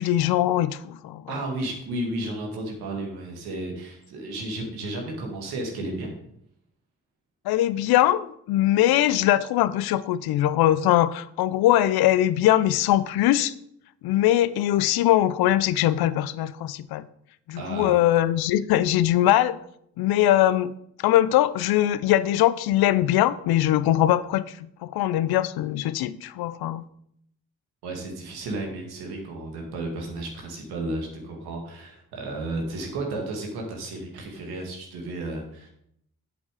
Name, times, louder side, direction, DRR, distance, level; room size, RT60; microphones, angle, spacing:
voice 1, 0.0-1.2 7.5-13.5 14.0-17.0 17.5-19.6 20.0-20.7 21.0-24.5 24.8-26.8, left 13 dB, 75° left, 16 dB, 0.6 m, -21 dB
voice 2, 1.3-6.1 17.6-18.0 27.8-35.7, right 2 dB, 85° right, 1 dB, 2.0 m, -33 dB
8.0 x 7.5 x 4.9 m, 0.72 s
hypercardioid pair, 40°, 37 cm